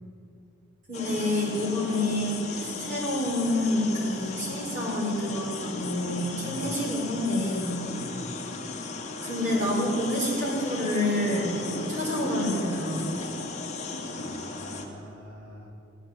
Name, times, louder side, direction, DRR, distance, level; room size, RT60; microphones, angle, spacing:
sound 1, 0.9-14.9, left 3 dB, 35° left, 1.5 m, -35 dB
voice 1, 0.9-7.7 9.2-13.1, left 1 dB, 40° right, -4 dB, 4.8 m, -28 dB
voice 2, 8.0-8.3 14.1-15.7, equal, 85° right, 0 dB, 2.6 m, -44 dB
18.5 x 9.1 x 7.9 m, 2.7 s
head